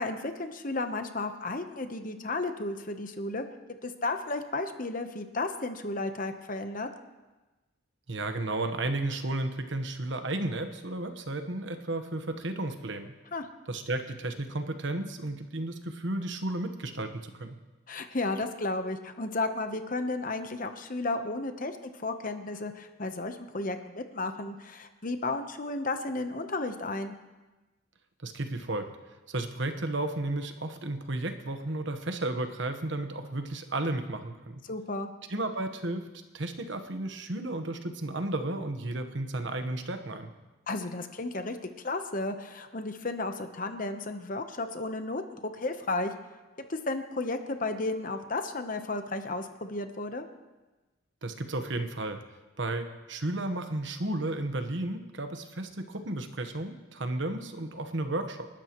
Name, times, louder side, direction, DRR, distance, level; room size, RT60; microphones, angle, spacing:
voice 1, 0.0-3.5 3.8-6.9 13.3-13.5 17.9-27.2 34.6-35.1 40.7-41.6 41.8-46.1 46.7-50.3, left 2 dB, 40° left, 7 dB, 1.0 m, -33 dB
voice 2, 8.1-13.1 13.7-17.6 28.2-28.9 29.3-34.6 35.3-36.1 36.3-40.3 51.2-52.2 52.6-58.5, right 2 dB, 60° right, 7 dB, 1.2 m, -33 dB
28.5 x 12.5 x 3.1 m, 1.2 s
head